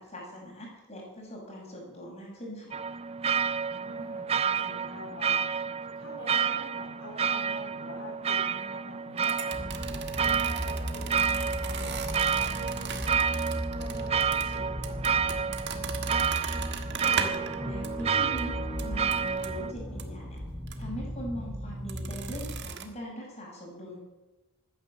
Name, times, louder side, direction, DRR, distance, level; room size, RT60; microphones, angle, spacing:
voice 1, 0.0-2.7 17.1-20.4 20.8-24.0, equal, 30° left, -2 dB, 6.0 m, -41 dB
sound 1, 2.7-19.7, right 6 dB, 25° right, 0.4 m, -30 dB
voice 2, 3.7-9.6 10.1-13.3 13.7-15.9, left 1 dB, 60° left, -3 dB, 4.2 m, -46 dB
sound 2, 9.2-17.6 17.8-18.0 18.4-18.5 18.8-19.5 20.0-20.1 20.7-20.8 21.9-22.9, right 7 dB, 50° right, 1.4 m, -38 dB
sound 3, 9.5-22.6, equal, ahead, 3.8 m, -36 dB
15.0 x 10.0 x 7.3 m, 1.1 s
head